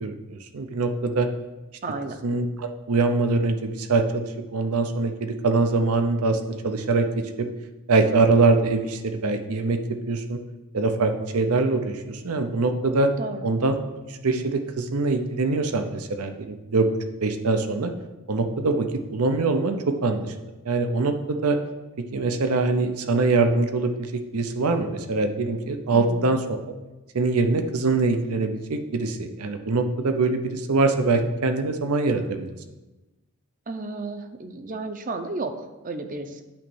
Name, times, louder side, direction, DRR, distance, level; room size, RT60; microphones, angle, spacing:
voice 1, 0.0-1.3 2.2-4.3 4.5-7.5 7.9-9.8 10.1-10.4 10.7-13.1 13.4-13.7 14.2-16.9 17.2-17.9 18.3-20.3 20.7-21.6 22.1-26.6 27.1-32.5, right 3 dB, 85° right, 7 dB, 0.6 m, -23 dB
voice 2, 1.8-2.2 13.2-13.5 25.9-26.2 33.7-36.4, right 3 dB, 35° right, 8 dB, 0.6 m, -33 dB
8.7 x 3.0 x 6.2 m, 1.1 s
head